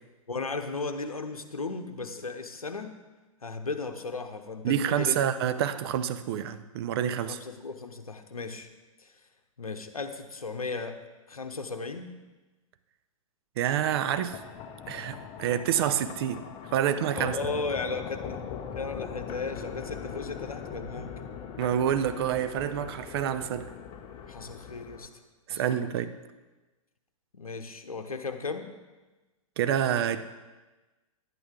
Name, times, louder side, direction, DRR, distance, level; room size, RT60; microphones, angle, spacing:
voice 1, 0.3-2.9 3.4-5.2 7.3-8.7 9.0-9.1 9.6-11.0 11.3-12.1 17.1-18.4 18.7-21.1 24.3-25.1 25.5-25.9 27.3-28.7, left 4 dB, 85° left, 7 dB, 0.8 m, -35 dB
voice 2, 4.6-7.4 13.6-14.4 14.9-16.5 16.7-17.4 21.6-23.7 25.5-26.1 29.6-30.3, right 9 dB, 45° right, 12 dB, 0.6 m, -28 dB
sound 1, 13.7-25.1, left 7 dB, 30° left, 0.8 m, -41 dB
11.0 x 8.6 x 3.7 m, 1.2 s
figure-of-eight pair, 110°, 18 cm